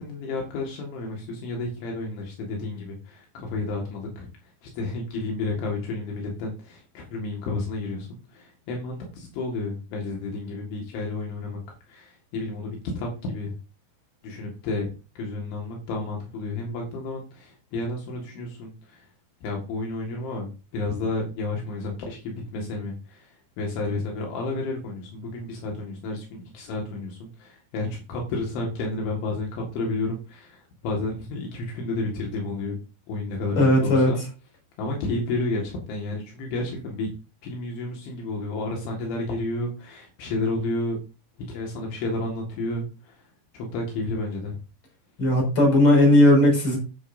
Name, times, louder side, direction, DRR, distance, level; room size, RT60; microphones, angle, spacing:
voice 1, 0.0-4.3 4.6-11.6 11.9-13.6 14.2-19.1 19.4-32.8 33.1-34.2 34.8-37.1 37.4-41.0 41.5-43.2 43.5-44.6, left 2 dB, 75° left, 0 dB, 4.2 m, -31 dB
voice 2, 33.5-34.1 45.2-46.8, left 1 dB, 25° left, 0 dB, 6.3 m, -17 dB
11.5 x 10.5 x 2.7 m, 0.31 s
omnidirectional pair, 5.6 m